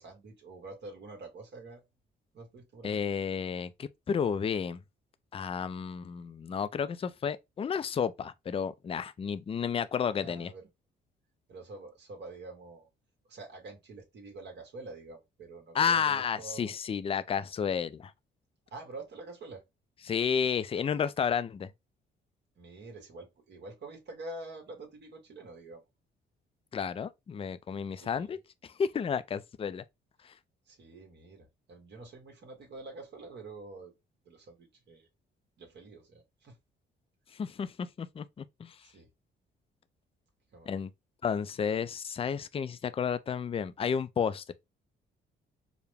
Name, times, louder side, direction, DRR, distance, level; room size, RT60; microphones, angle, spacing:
voice 1, 0.0-1.8 2.3-3.0 10.1-10.7 11.5-12.9 13.3-16.7 18.7-19.6 22.6-25.8 28.0-28.3 30.7-33.9 34.2-35.1 35.6-36.6 38.8-39.1 40.5-40.7, right 3 dB, 60° right, 1.5 m, -47 dB
voice 2, 2.8-4.8 5.3-10.5 15.7-18.1 20.1-21.7 26.7-29.8 30.2-30.3 37.3-38.8 40.7-40.9 41.2-44.5, left 7 dB, 30° left, 0.4 m, -32 dB
4.7 x 2.2 x 3.4 m
cardioid pair, 90°, 20 cm